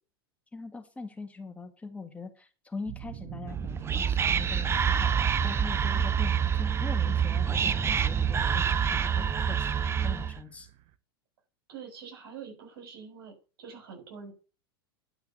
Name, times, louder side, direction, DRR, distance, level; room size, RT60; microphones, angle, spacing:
voice 1, 0.5-10.7, left 4 dB, 10° left, 6 dB, 2.0 m, -42 dB
sound 1, 2.9-11.0, right 14 dB, 45° right, 1.0 m, -43 dB
Whispering, 3.5-10.4, right 7 dB, 20° right, 0.6 m, -27 dB
voice 2, 11.7-14.3, right 6 dB, 65° right, 2 dB, 7.0 m, -45 dB
11.0 x 5.7 x 6.9 m, 0.34 s
figure-of-eight pair, 90°, 13 cm